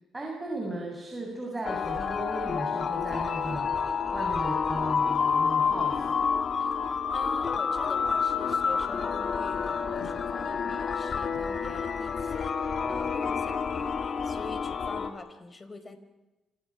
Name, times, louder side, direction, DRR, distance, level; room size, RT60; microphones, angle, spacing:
voice 1, 0.1-3.8 4.1-6.2, right 2 dB, 15° right, 0 dB, 7.5 m, -36 dB
sound 1, 1.6-15.1, left 6 dB, 50° left, 3.0 m, -29 dB
Packing tape duct tape, 4.6-4.8 5.3-5.4 5.6-5.7 6.2-6.3 6.6-6.7 7.1-7.2 8.3-8.6 9.7-10.2 11.1-11.4 13.0-13.2 13.5-13.7 13.9-14.4, left 10 dB, 80° left, 5.5 m, -48 dB
voice 2, 7.1-13.9 14.2-16.0, left 3 dB, 30° left, 9 dB, 4.4 m, -44 dB
29.0 x 27.5 x 6.0 m, 1.1 s
cardioid pair, 90°, 0 cm